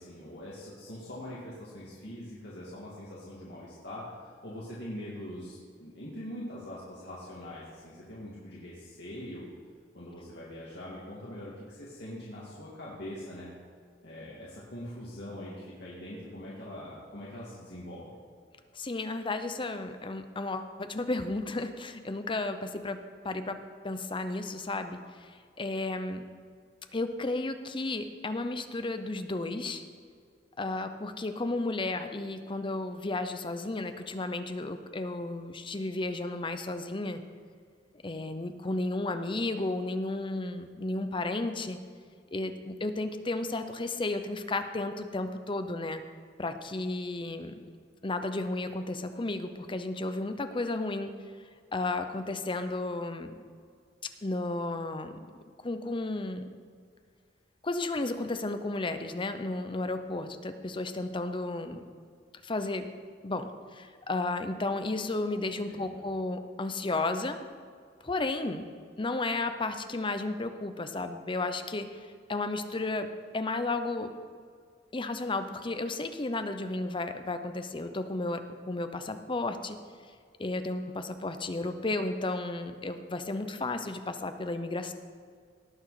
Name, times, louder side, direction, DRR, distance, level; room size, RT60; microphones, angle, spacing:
voice 1, 0.0-9.5 9.9-13.5 14.0-18.1 65.7-66.0, left 1 dB, 60° left, -7 dB, 2.1 m, -43 dB
voice 2, 18.7-23.0 23.2-26.3 26.9-29.8 30.6-37.2 38.0-41.8 42.3-46.0 46.4-47.6 48.0-51.1 51.7-53.4 54.2-56.5 57.6-61.8 62.4-62.9 63.2-67.4 68.0-68.7 69.0-74.1 74.9-79.8 80.4-84.9, left 2 dB, 25° left, 8 dB, 0.7 m, -33 dB
18.5 x 6.2 x 4.9 m, 2.1 s
head